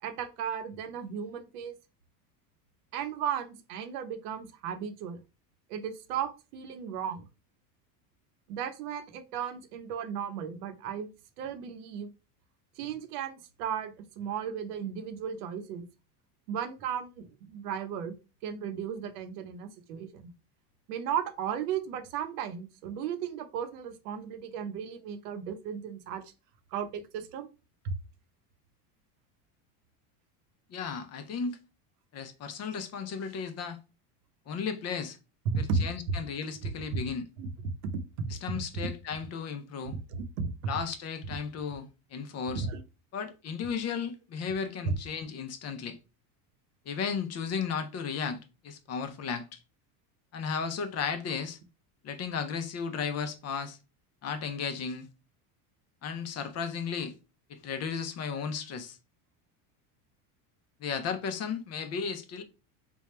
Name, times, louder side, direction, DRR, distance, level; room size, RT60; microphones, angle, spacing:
voice 1, 0.0-1.7 2.9-5.2 5.7-7.3 8.5-11.1 11.4-12.1 12.8-15.9 16.5-18.2 18.4-20.3 20.9-26.2 26.7-27.5 27.8-27.9 35.4-35.8 37.4-37.5 37.9-38.0 38.3-38.9 39.9-40.5 42.5-42.8 44.8-44.9, right 7 dB, 80° right, 0.8 m, -35 dB
voice 2, 30.7-31.6 32.1-33.8 34.5-35.2 35.6-37.2 38.4-39.9 40.7-42.7 43.1-46.0 46.9-49.6 50.3-51.6 52.0-53.8 54.2-55.1 56.0-57.1 57.5-59.0 60.8-62.4, left 6 dB, 35° left, 0.6 m, -34 dB
3.5 x 2.3 x 4.2 m
supercardioid pair, 120°, 45 cm